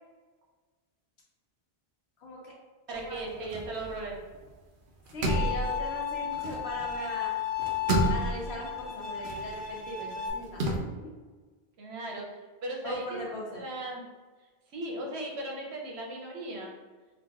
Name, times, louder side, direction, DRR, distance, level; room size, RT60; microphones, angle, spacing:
voice 1, 2.2-2.6 2.9-3.5 5.1-7.4 8.0-10.9 12.8-13.6, left 1 dB, 80° left, -2 dB, 1.1 m, -39 dB
sound 1, 2.9-4.6 4.9-7.1 7.4-10.8, right 2 dB, 60° right, 0.7 m, -32 dB
voice 2, 2.9-4.2 11.8-12.3 12.6-14.0 14.7-16.7, right 2 dB, 85° right, 0 dB, 1.0 m, -37 dB
Bowed string instrument, 5.3-10.3, left 9 dB, 60° left, 0.7 m, -34 dB
3.2 x 2.4 x 3.4 m, 1.3 s
omnidirectional pair, 1.1 m